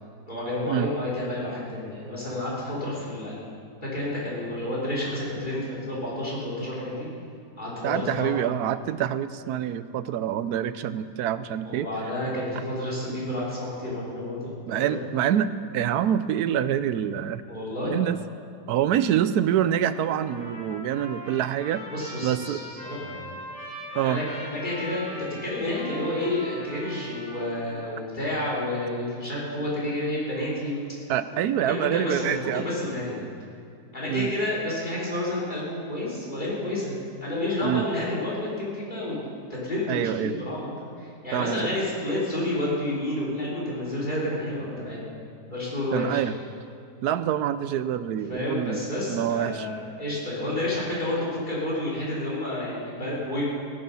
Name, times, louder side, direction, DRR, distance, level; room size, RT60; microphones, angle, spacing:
voice 1, 0.3-3.4 3.9-7.1 7.6-8.4 11.6-14.4 14.9-15.0 17.5-18.0 21.9-23.2 24.0-30.8 31.7-33.2 33.9-40.7 41.0-45.1 45.4-46.3 48.3-53.4, left 1 dB, 25° left, -6 dB, 4.4 m, -30 dB
voice 2, 7.8-11.9 14.7-17.4 17.9-18.2 18.7-21.9 22.2-22.6 23.9-24.2 31.1-32.7 34.1-34.3 37.6-37.9 39.9-40.3 41.3-41.6 45.9-46.3 47.0-49.7, right 10 dB, 70° right, 13 dB, 1.1 m, -26 dB
Trumpet, 19.8-27.9, equal, 5° left, 4.1 m, -41 dB
17.0 x 10.5 x 5.5 m, 2.5 s
omnidirectional pair, 1.8 m